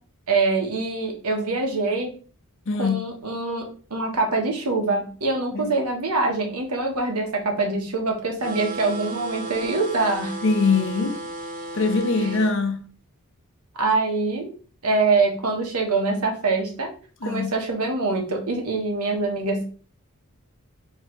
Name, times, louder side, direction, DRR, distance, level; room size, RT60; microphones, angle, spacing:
voice 1, 0.3-2.1 2.8-10.4 13.8-14.5 14.8-16.9 17.2-19.6, right 3 dB, 90° right, 1.2 m, -24 dB
voice 2, 2.7-3.0 5.5-5.7 10.4-11.2 11.7-12.8 17.2-17.5, left 4 dB, 60° left, 0.7 m, -22 dB
sound 1, 8.4-12.5, right 2 dB, 35° right, 0.7 m, -34 dB
4.7 x 3.2 x 3.2 m
head